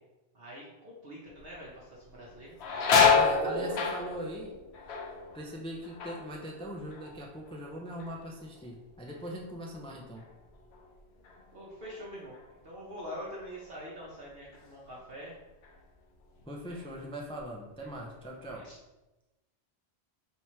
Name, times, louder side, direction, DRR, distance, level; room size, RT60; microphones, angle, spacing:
voice 1, 0.3-3.0 3.4-3.8 11.5-12.3 12.6-15.4 18.5-18.8, equal, 65° right, -6 dB, 1.1 m, -44 dB
sound 1, 1.4-1.8 2.1-7.7 8.0-8.6 9.1-12.0 12.3-12.5 13.4-13.6 14.1-15.2 15.6-15.8 16.4-17.0 17.4-18.5, left 5 dB, 80° left, 0.9 m, -30 dB
voice 2, 3.0-4.5 5.3-10.2 16.5-18.6, equal, 10° left, -1 dB, 0.4 m, -41 dB
3.5 x 2.9 x 4.3 m, 1.0 s
omnidirectional pair, 1.1 m